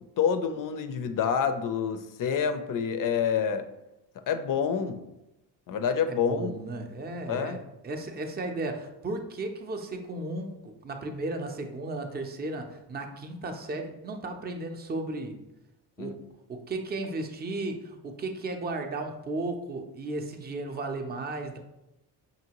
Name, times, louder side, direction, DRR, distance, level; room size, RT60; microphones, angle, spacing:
voice 1, 0.2-3.7 4.3-5.0 5.7-6.5 7.3-7.6 16.0-16.2, left 7 dB, 50° left, 9 dB, 0.5 m, -27 dB
voice 2, 6.1-15.4 16.0-16.2 16.5-21.6, right 2 dB, 25° right, 4 dB, 0.5 m, -35 dB
5.6 x 2.6 x 2.9 m, 0.91 s
cardioid pair, 95°, 43 cm